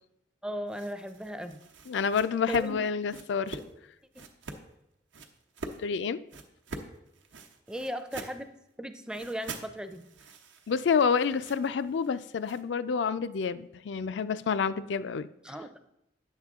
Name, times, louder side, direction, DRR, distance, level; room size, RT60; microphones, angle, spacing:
voice 1, 0.4-1.6 2.5-2.8 3.1-3.2 4.1-4.2 7.7-8.5 8.8-10.0 15.4-15.7, equal, 5° right, 0.4 m, -37 dB
sound 1, 0.7-3.7 4.1-4.6 5.1-5.8 6.3-8.4 9.1-12.6, right 3 dB, 85° right, 0.9 m, -45 dB
voice 2, 1.9-3.6 5.8-6.2 10.7-15.3, left 6 dB, 75° left, 0.4 m, -28 dB
9.7 x 7.3 x 3.6 m
head